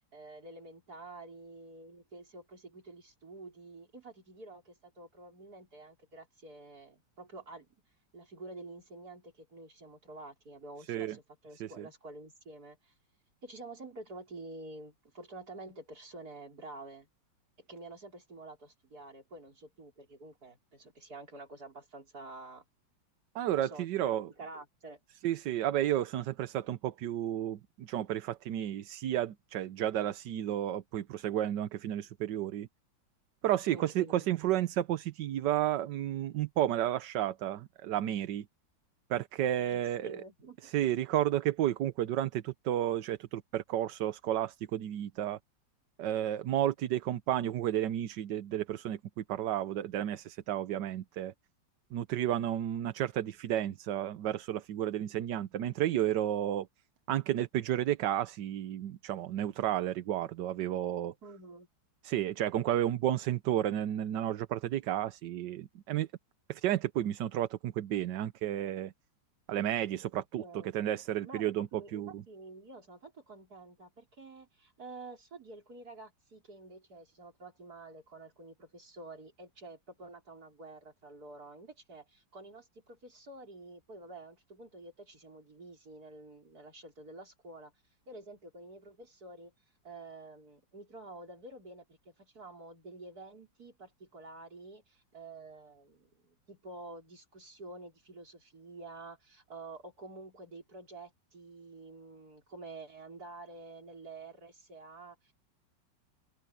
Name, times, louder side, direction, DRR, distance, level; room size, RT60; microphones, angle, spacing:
voice 1, 0.1-7.7 8.1-12.9 13.4-17.1 17.6-22.6 23.6-25.0 33.7-34.3 39.7-40.7 61.2-61.7 70.2-70.7 71.2-87.7 88.1-89.5 89.8-105.3, right 2 dB, 50° right, 5.5 m, -49 dB
voice 2, 23.3-24.3 25.2-32.7 33.4-38.5 39.1-40.2 40.6-45.4 46.0-51.3 51.9-56.7 57.1-61.1 62.0-66.1 66.5-68.9 69.5-70.4 70.7-72.2, right 12 dB, 70° right, 1.4 m, -32 dB
open air
omnidirectional pair, 2.0 m